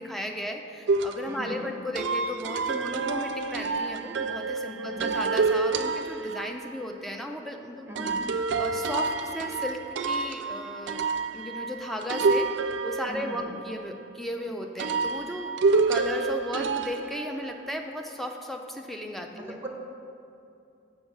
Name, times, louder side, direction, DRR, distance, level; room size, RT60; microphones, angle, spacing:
voice 1, 0.0-11.0 11.3-12.5 12.8-15.5 15.9-19.6, left 1 dB, ahead, 2 dB, 0.4 m, -35 dB
sound 1, 0.9-6.7 7.9-14.0 14.8-17.8, right 4 dB, 80° right, 0.4 m, -28 dB
voice 2, 1.3-1.7 4.8-5.1 7.9-8.3 13.0-13.5 19.3-19.7, right 1 dB, 15° right, 0 dB, 1.0 m, -39 dB
6.3 x 5.3 x 6.3 m, 2.6 s
head